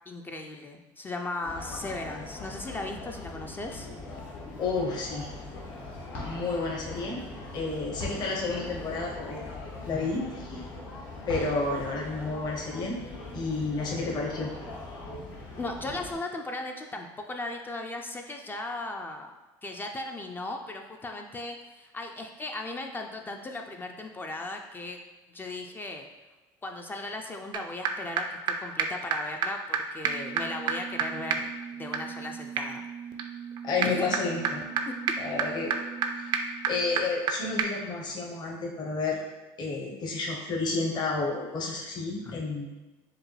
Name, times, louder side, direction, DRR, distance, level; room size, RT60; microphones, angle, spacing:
voice 1, 0.1-3.9 15.6-19.3 19.6-25.0 25.3-26.1 26.6-31.5 31.7-32.8 33.8-34.1 34.9-35.2 42.2-42.4, left 2 dB, 20° left, 3 dB, 0.3 m, -37 dB
sound 1, 1.4-16.1, left 2 dB, 75° left, 1.1 m, -41 dB
voice 2, 4.6-5.3 6.2-7.2 7.5-10.6 11.3-13.0 13.3-14.5 33.6-34.6 35.2-35.7 36.2-36.3 36.7-39.2 39.6-42.7, left 3 dB, 45° left, -1 dB, 0.8 m, -31 dB
sound 2, 27.5-27.6 27.8-27.9 28.2-28.3 28.5-28.6 28.8-28.9 29.1-29.2 29.4-29.5 29.7-29.8 30.0-37.3 37.6-37.7, right 6 dB, 50° right, 0.4 m, -31 dB
4.8 x 2.2 x 3.2 m, 1.2 s
supercardioid pair, 105°, 10 cm